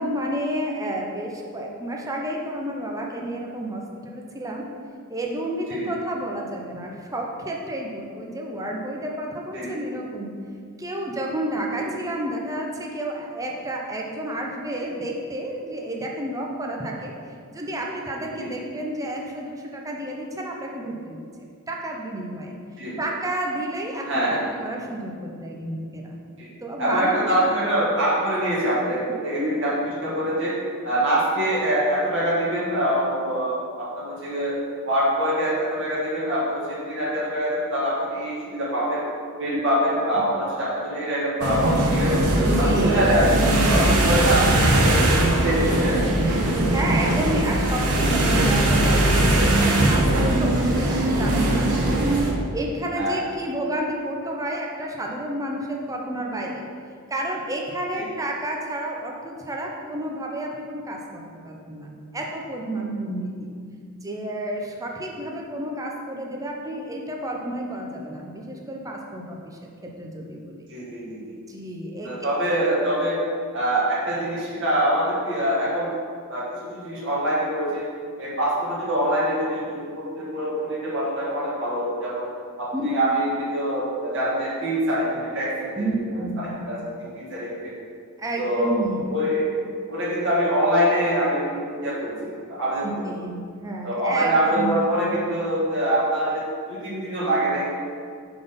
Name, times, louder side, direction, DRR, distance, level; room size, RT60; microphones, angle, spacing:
voice 1, 0.0-4.6 5.1-10.3 10.8-17.1 17.5-21.2 21.7-22.5 23.0-26.2 26.6-27.5 29.2-29.5 39.5-39.6 42.5-43.2 46.6-52.0 52.5-56.6 57.1-63.5 64.0-70.6 71.5-72.1 82.7-82.9 85.8-86.7 88.2-89.2 92.8-94.7, right 1 dB, 15° right, -1 dB, 0.7 m, -31 dB
voice 2, 24.1-24.4 26.4-26.5 26.8-29.7 30.0-30.5 30.8-34.5 34.8-39.0 39.4-42.2 42.6-45.1 45.3-46.1 51.8-51.9 52.9-53.2 58.0-58.1 70.7-71.2 72.0-73.2 73.5-75.9 76.3-77.8 78.2-82.2 82.6-85.9 86.4-87.7 88.4-88.7 89.1-89.5 89.9-93.1 93.8-96.4 96.7-97.6, right 1 dB, 55° right, -7 dB, 1.4 m, -24 dB
sound 1, 41.4-52.3, right 1 dB, 75° right, 1.0 m, -20 dB
6.0 x 3.9 x 5.2 m, 2.2 s
head